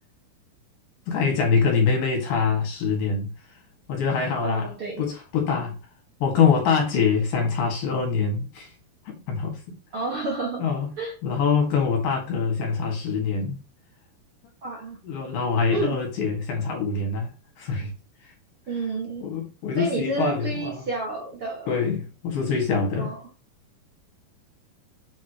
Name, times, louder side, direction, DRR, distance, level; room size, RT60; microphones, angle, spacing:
voice 1, 1.1-3.3 3.9-5.8 6.2-8.7 9.3-9.8 10.6-10.9 11.2-13.6 15.0-17.3 17.6-17.9 18.2-18.3 19.2-20.8 21.7-23.2, left 5 dB, 65° left, 3.5 m, -24 dB
voice 2, 4.4-5.0 9.9-10.6 11.0-11.1 14.6-15.0 15.7-15.9 18.7-19.2 19.8-21.7 23.0-23.2, right 3 dB, 45° right, 2.0 m, -30 dB
7.4 x 6.0 x 3.0 m
omnidirectional pair, 4.5 m